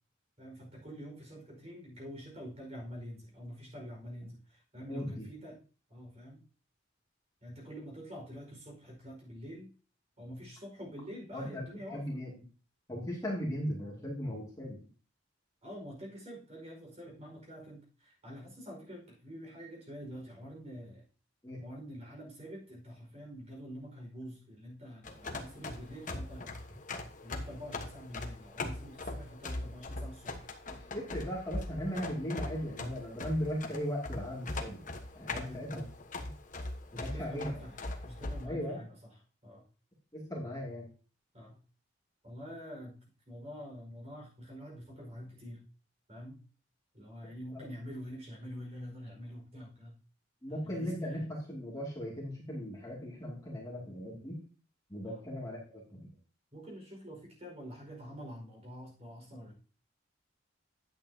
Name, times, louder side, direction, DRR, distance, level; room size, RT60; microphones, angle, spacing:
voice 1, 0.4-5.6 5.9-6.4 7.4-9.7 10.2-12.2 15.6-21.0 21.6-26.5 27.2-30.5 35.4-35.8 36.9-39.6 41.3-41.6 42.2-43.0 43.3-45.6 46.1-46.4 46.9-50.0 50.5-51.3 55.0-55.2 56.5-59.6, equal, 35° right, 0 dB, 5.0 m, -46 dB
voice 2, 4.8-5.2 11.3-11.6 11.9-12.3 12.9-14.8 21.4-21.6 30.7-34.8 35.1-35.9 36.2-36.3 36.9-37.6 38.4-38.8 40.1-40.9 47.5-47.6 50.4-54.4 54.9-56.1, equal, 20° left, -3 dB, 2.4 m, -38 dB
sound 1, 25.0-38.5, left 2 dB, 40° left, 1.2 m, -41 dB
10.5 x 8.7 x 2.8 m, 0.38 s
head